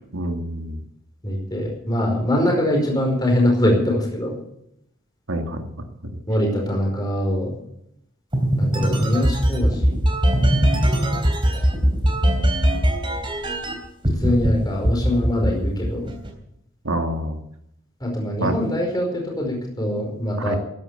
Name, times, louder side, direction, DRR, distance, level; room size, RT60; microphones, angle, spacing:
voice 1, 0.1-0.8 5.3-5.6 16.8-17.4 18.4-18.5 20.4-20.6, right 1 dB, 80° right, 5 dB, 1.9 m, -26 dB
voice 2, 1.2-4.4 6.3-7.6 8.6-10.0 11.5-11.6 14.2-16.1 18.0-20.6, left 1 dB, 20° left, 0 dB, 4.9 m, -23 dB
sound 1, 8.3-13.7 14.0-14.5 14.8-16.3, equal, 25° right, 3.4 m, -20 dB
14.0 x 11.0 x 8.2 m, 0.77 s
head